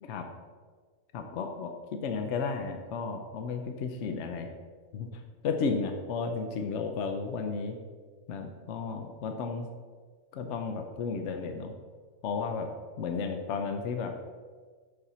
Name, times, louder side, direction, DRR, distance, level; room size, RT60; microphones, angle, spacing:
voice 1, 1.1-4.5 4.9-7.7 8.3-9.7 10.3-11.7 12.2-12.7 13.0-14.1, left 5 dB, 65° left, 5 dB, 1.0 m, -33 dB
11.5 x 4.4 x 4.2 m, 1.5 s
omnidirectional pair, 1.4 m